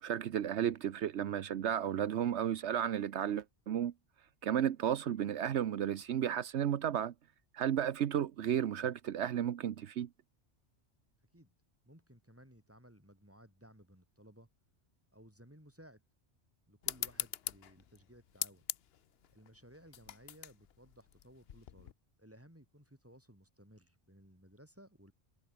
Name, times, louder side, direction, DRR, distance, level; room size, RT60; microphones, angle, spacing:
voice 1, 0.0-3.9 4.4-7.1 7.5-10.1, right 9 dB, 80° right, 1.1 m, -33 dB
voice 2, 11.9-14.5 15.1-16.0 16.7-18.6 19.3-21.9 22.2-25.1, equal, 10° right, 5.9 m, -59 dB
sound 1, 16.8-21.9, left 10 dB, 65° left, 0.9 m, -42 dB
omnidirectional pair, 1.2 m